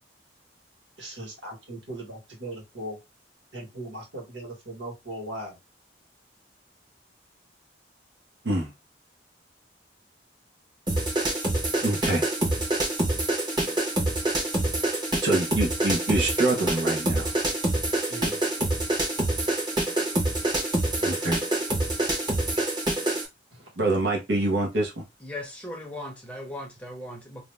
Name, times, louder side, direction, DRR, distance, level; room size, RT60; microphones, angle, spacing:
voice 1, 1.0-3.0 3.5-5.6 17.9-18.4 22.3-22.7 23.5-23.7, right 1 dB, 85° right, 1.3 m, -39 dB
sound 1, 10.9-23.3, right 1 dB, 25° right, 0.9 m, -26 dB
voice 2, 11.8-12.2 15.2-17.3 21.0-21.4 23.8-25.0, right 2 dB, 65° right, 0.7 m, -25 dB
voice 3, 25.2-27.4, left 1 dB, 5° left, 0.7 m, -38 dB
2.6 x 2.1 x 3.2 m
head